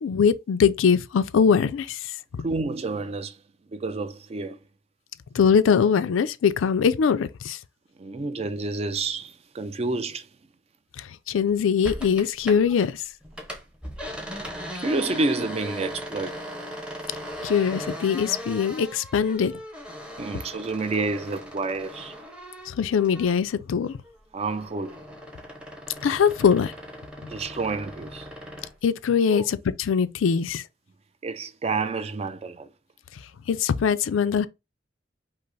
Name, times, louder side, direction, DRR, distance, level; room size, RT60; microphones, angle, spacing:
voice 1, 0.0-2.1 5.3-7.6 11.0-13.0 17.4-19.5 22.7-24.0 26.0-26.7 28.8-30.6 33.5-34.5, left 6 dB, 85° left, 0.4 m, -22 dB
voice 2, 2.4-3.4 3.7-4.6 8.0-10.3 14.8-16.5 20.2-22.2 24.3-25.0 27.3-28.3 29.3-29.5 31.2-32.7, right 3 dB, 30° right, 0.4 m, -29 dB
sound 1, 11.8-12.9 13.2-23.6 23.9-28.8, equal, 5° right, 0.8 m, -39 dB
5.3 x 2.0 x 3.9 m
head